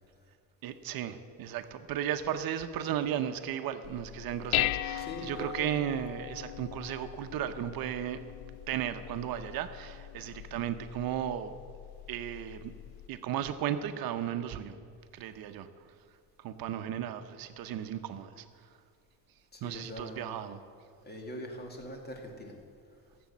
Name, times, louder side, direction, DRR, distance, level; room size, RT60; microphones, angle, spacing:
voice 1, 0.6-8.2 8.7-11.5 12.1-12.7 13.1-14.8 15.1-15.7 16.4-18.5 19.6-20.6, right 10 dB, 65° right, 9 dB, 0.8 m, -35 dB
Dishes pots and pans, 3.8-13.1, left 15 dB, 80° left, 0.5 m, -39 dB
voice 2, 5.0-5.7 19.5-20.4 21.0-22.5, left 1 dB, 25° left, 2 dB, 2.3 m, -42 dB
16.0 x 7.7 x 7.2 m, 2.3 s
cardioid pair, 120°, 38 cm